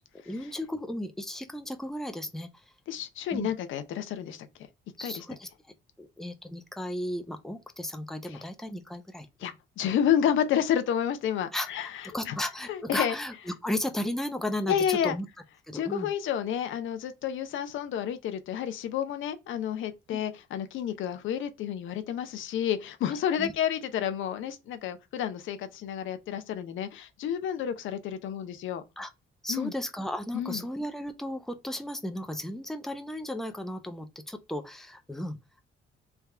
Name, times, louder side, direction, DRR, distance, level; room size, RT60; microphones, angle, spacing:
voice 1, 0.2-2.6 3.3-3.5 5.0-5.5 6.0-9.5 11.5-15.3 15.7-16.1 20.1-20.2 23.4-23.5 29.0-29.1 29.4-35.4, left 1 dB, ahead, 0.6 m, -35 dB
voice 2, 2.9-4.5 5.0-5.3 8.3-8.4 9.4-12.3 12.7-13.2 14.7-15.2 15.7-28.8 29.5-29.7 30.3-30.6, left 9 dB, 75° left, 0.6 m, -30 dB
3.5 x 2.3 x 4.2 m
cardioid pair, 90°, 20 cm